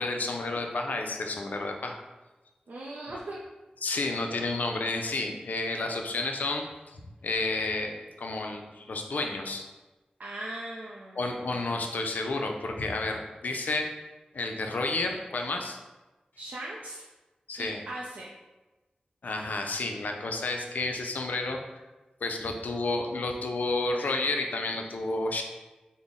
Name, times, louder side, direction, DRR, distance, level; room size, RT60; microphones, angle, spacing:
voice 1, 0.0-2.0 3.1-3.2 3.8-6.7 6.9-9.7 11.2-13.9 14.3-15.8 17.5-17.8 19.2-21.6 22.2-25.4, left 2 dB, 80° left, 3 dB, 0.4 m, -31 dB
voice 2, 2.7-3.4 10.2-11.3 16.4-17.0 17.6-18.3, right 1 dB, 75° right, -4 dB, 0.4 m, -39 dB
3.7 x 2.0 x 3.6 m, 1.1 s
wide cardioid pair, 90°, 3 cm